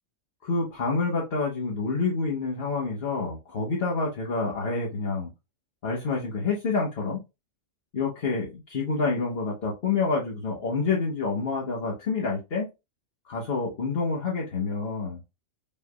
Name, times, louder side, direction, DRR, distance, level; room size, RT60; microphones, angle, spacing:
voice 1, 0.4-5.3 5.8-7.2 7.9-12.7 13.3-15.2, left 4 dB, 50° left, 1.3 m, -28 dB
5.4 x 3.5 x 2.3 m
omnidirectional pair, 1.4 m